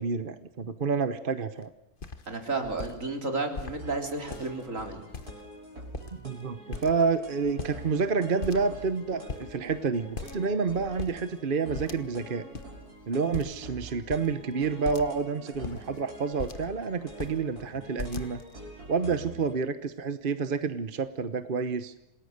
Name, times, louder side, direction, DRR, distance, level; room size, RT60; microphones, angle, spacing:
voice 1, 0.0-1.7 6.1-12.4 13.1-18.4 18.9-21.9, right 5 dB, 40° right, 11 dB, 1.0 m, -29 dB
sound 1, 1.6-1.7 2.0-2.3 2.6-2.9 3.6-3.8 4.2-4.7 5.1-5.6 5.8-6.3 6.7-7.2 7.4-8.1 8.4-8.9 9.3-9.5 10.1-10.5 10.8-11.2 11.7-12.3 12.5-12.7 13.3-13.7 14.1-14.3 14.9-15.2 15.5-16.7 17.1-17.4 18.0-18.6, left 4 dB, 35° left, 1.4 m, -39 dB
voice 2, 2.3-5.0 19.1-19.2, right 3 dB, 55° right, 4 dB, 3.9 m, -32 dB
sound 2, 3.8-19.5, right 1 dB, 80° right, 7.2 m, -46 dB
28.0 x 19.5 x 6.6 m, 0.92 s
omnidirectional pair, 1.6 m